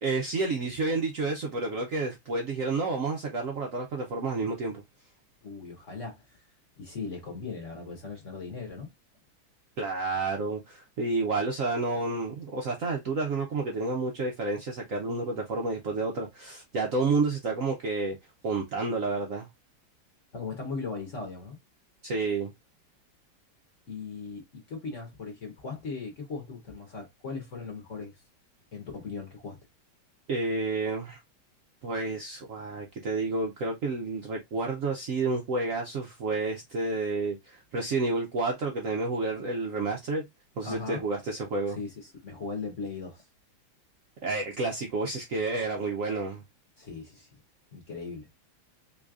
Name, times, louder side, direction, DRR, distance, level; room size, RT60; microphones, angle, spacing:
voice 1, 0.0-4.8 9.8-18.2 18.4-19.5 22.0-22.5 30.3-31.2 31.8-40.2 40.6-41.8 44.2-46.4, right 3 dB, 85° right, 0.7 m, -30 dB
voice 2, 5.4-6.2 6.8-8.9 20.3-21.6 23.9-28.1 28.7-29.6 40.6-41.0 41.7-43.2 46.8-47.3 47.7-48.3, left 4 dB, 45° left, 1.1 m, -38 dB
3.9 x 3.1 x 2.4 m
omnidirectional pair, 2.3 m